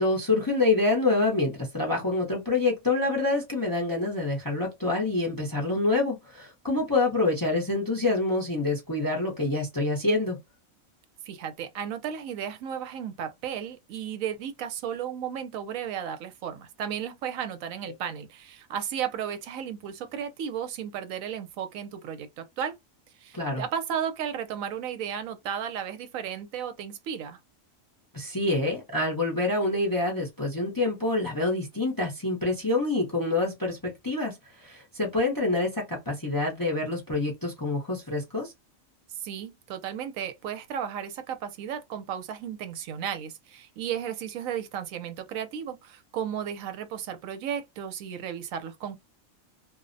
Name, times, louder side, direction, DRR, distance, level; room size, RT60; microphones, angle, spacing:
voice 1, 0.0-10.4 23.3-23.6 28.1-38.5, left 2 dB, 25° left, 0.5 m, -26 dB
voice 2, 11.3-22.8 23.2-27.4 39.2-49.0, right 8 dB, 85° right, 1.0 m, -34 dB
2.4 x 2.0 x 2.5 m
omnidirectional pair, 1.4 m